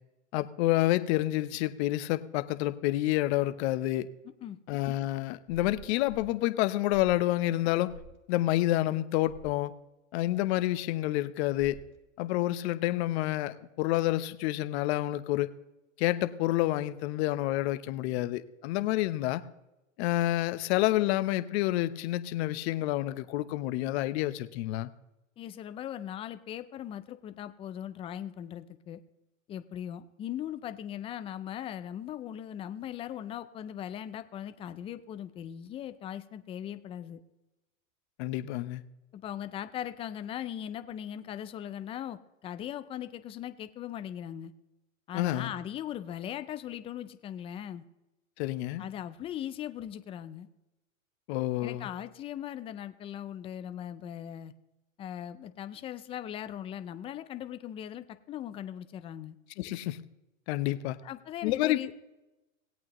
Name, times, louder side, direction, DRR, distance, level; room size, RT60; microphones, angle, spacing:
voice 1, 0.3-4.1 4.7-7.9 8.3-9.7 10.1-11.8 12.2-15.5 16.0-19.4 20.0-24.9 38.2-38.8 45.1-45.5 48.4-48.8 51.3-51.9 59.6-60.0 60.5-61.0 61.4-61.9, left 16 dB, 50° left, 12 dB, 0.9 m, -29 dB
sound 1, 5.5-6.3 6.9-7.3 7.9-8.2 9.3-9.6 11.6-12.0, left 3 dB, 85° left, 1.9 m, -48 dB
voice 2, 25.4-29.0 29.5-37.2 39.1-44.5 45.1-47.8 48.8-50.5 51.6-54.5 55.0-59.4 61.0-61.9, left 10 dB, 15° left, 11 dB, 0.3 m, -39 dB
19.0 x 8.5 x 3.0 m, 0.97 s
hypercardioid pair, 120°, 41 cm